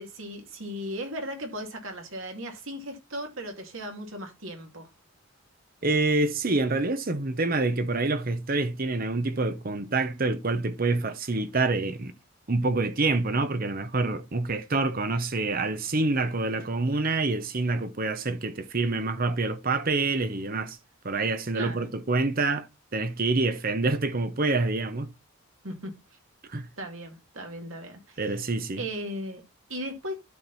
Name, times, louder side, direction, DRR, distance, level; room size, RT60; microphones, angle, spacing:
voice 1, 0.0-4.9 21.5-21.9 25.6-25.9 26.8-28.4 28.8-29.4 29.7-30.2, equal, 65° right, 2.5 m, -37 dB
voice 2, 5.8-12.1 12.5-20.8 21.0-22.7 22.9-25.1 26.5-26.7 28.2-28.8, right 3 dB, 40° right, 0.9 m, -27 dB
12.0 x 4.6 x 4.1 m
head